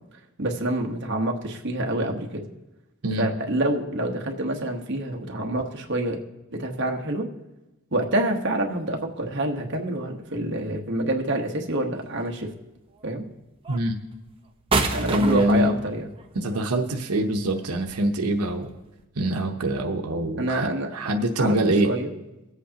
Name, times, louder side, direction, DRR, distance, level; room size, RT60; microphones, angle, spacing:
voice 1, 0.4-2.4 3.2-6.2 6.6-7.3 7.9-12.5 13.0-13.3 14.9-16.1 20.4-20.9 21.4-22.1, right 1 dB, 50° right, 1 dB, 1.2 m, -27 dB
sound 1, 8.6-8.7 9.4-10.0 11.4-12.0 12.9-13.1 13.6-19.0, right 3 dB, 25° right, 0.9 m, -31 dB
voice 2, 15.1-15.8 16.3-18.7 19.2-21.9, right 1 dB, 90° right, 4 dB, 0.9 m, -24 dB
23.5 x 8.2 x 2.9 m, 1.0 s
head